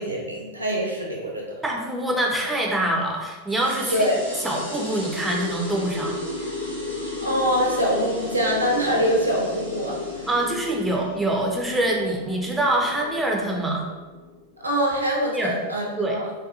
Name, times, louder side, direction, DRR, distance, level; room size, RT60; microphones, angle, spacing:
voice 1, 0.0-1.4 3.9-4.2 7.2-10.2 14.6-16.3, equal, 80° right, -2 dB, 0.5 m, -24 dB
voice 2, 1.6-4.1 4.4-6.2 10.3-13.9 15.3-15.5 16.0-16.2, right 1 dB, 5° right, -1 dB, 0.4 m, -25 dB
sound 1, 3.5-14.5, left 2 dB, 90° left, 0.9 m, -34 dB
2.6 x 2.3 x 2.4 m, 1.2 s
figure-of-eight pair, 90°, 0 cm